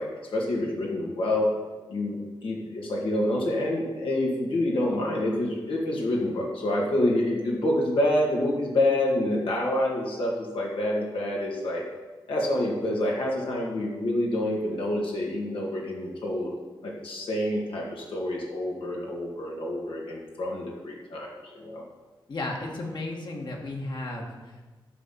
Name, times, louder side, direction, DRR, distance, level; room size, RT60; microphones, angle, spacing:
voice 1, 0.0-1.5 1.9-11.8 12.3-16.5 16.8-21.8, left 1 dB, 85° left, -2 dB, 2.2 m, -27 dB
voice 2, 22.3-24.6, left 2 dB, 55° left, 0 dB, 1.9 m, -34 dB
11.0 x 4.2 x 7.6 m, 1.2 s
wide cardioid pair, 110°, 9 cm